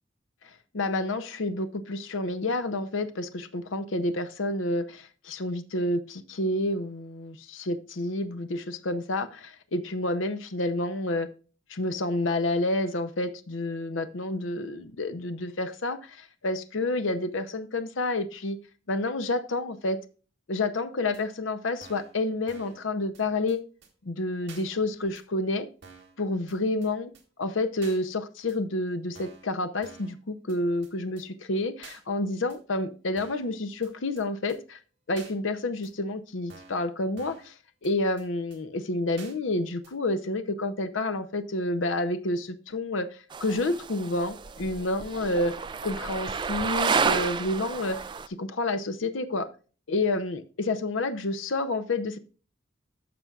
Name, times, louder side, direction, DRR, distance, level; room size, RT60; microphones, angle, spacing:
voice 1, 0.7-11.3 11.7-18.6 18.9-20.0 20.5-23.6 24.0-25.7 26.2-27.1 27.4-34.8 35.1-37.5 37.8-43.1 43.4-45.5 45.8-48.0 48.3-49.5 49.9-52.2, left 2 dB, 75° left, 0.7 m, -29 dB
sound 1, 21.1-21.2 21.8-22.1 22.5-22.8 23.1-23.2 23.5-23.6 23.8-23.9 24.5-24.6 25.1-25.2 25.8-26.1 26.5-26.6 26.8-26.9 27.1-27.2 27.8-28.0 28.5-28.6 29.1-29.5 29.8-30.2 30.5-30.6 30.8-30.9 31.2-31.3 31.8-32.0 32.5-32.6 33.2-33.5 33.8-33.9 34.2-34.3 34.5-34.6 35.2-35.3 35.8-35.9 36.5-36.8 37.2-37.5 37.8-37.9 38.2-38.3 38.5-38.6 39.2-39.3 39.8-39.9, right 5 dB, 55° right, 2.2 m, -49 dB
sound 2, 43.3-48.3, right 5 dB, 25° right, 0.3 m, -30 dB
14.5 x 6.0 x 2.4 m
head